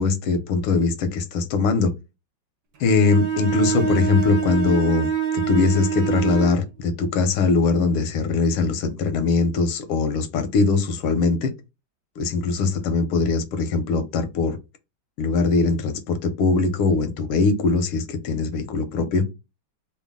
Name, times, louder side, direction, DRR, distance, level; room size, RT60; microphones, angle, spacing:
voice 1, 0.0-1.9 2.8-5.1 5.3-11.5 12.2-14.6 15.2-19.2, left 4 dB, 85° left, 1.6 m, -21 dB
Bowed string instrument, 2.8-6.6, right 7 dB, 60° right, 1.3 m, -25 dB
3.8 x 2.2 x 3.5 m
omnidirectional pair, 2.4 m